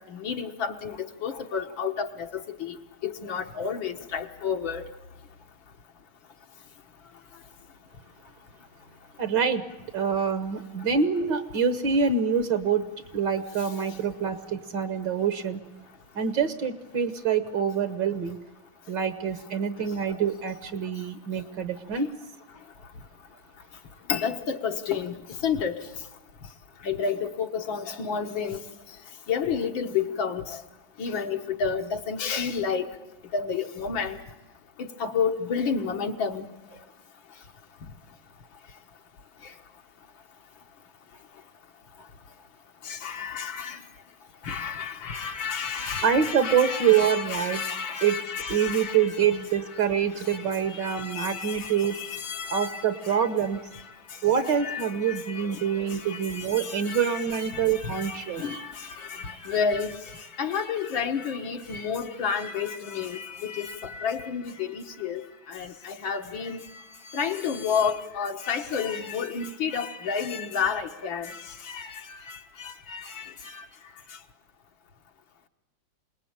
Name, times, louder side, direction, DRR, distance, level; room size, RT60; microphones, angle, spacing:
voice 1, 0.1-4.8 24.1-25.2 25.4-25.8 26.8-28.6 29.3-30.6 31.0-32.9 33.3-34.2 34.8-36.5 39.4-39.5 42.8-43.8 44.4-49.3 50.3-53.3 53.7-53.8 54.6-73.7, left 6 dB, 80° left, 2.2 m, -31 dB
voice 2, 9.2-9.6 9.9-12.8 13.1-15.6 16.2-18.4 18.9-22.1 46.0-47.6 48.0-48.2 48.5-52.0 52.5-53.6 54.2-58.4, right 7 dB, 65° right, 1.8 m, -25 dB
27.5 x 19.5 x 8.9 m
omnidirectional pair, 2.1 m